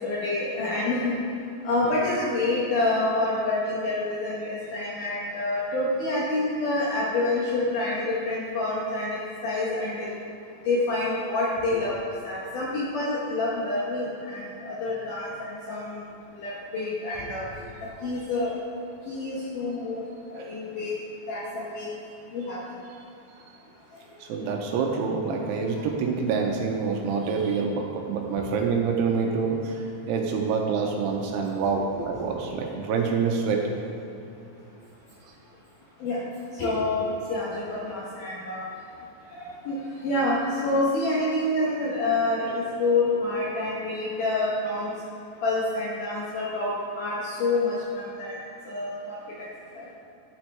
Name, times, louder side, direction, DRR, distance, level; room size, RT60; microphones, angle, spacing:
voice 1, 0.0-1.2 1.6-10.1 10.7-12.0 12.2-16.0 16.4-17.4 18.0-18.6 19.1-20.9 21.3-21.9 22.3-22.6 32.0-32.1 36.0-36.2 36.5-38.7 39.4-44.9 45.4-48.4 48.7-49.2 49.8-49.9, left 2 dB, 70° left, -6 dB, 2.0 m, -27 dB
voice 2, 24.2-33.6, right 5 dB, 85° right, 1 dB, 2.6 m, -26 dB
11.5 x 7.4 x 3.3 m, 2.8 s
omnidirectional pair, 5.0 m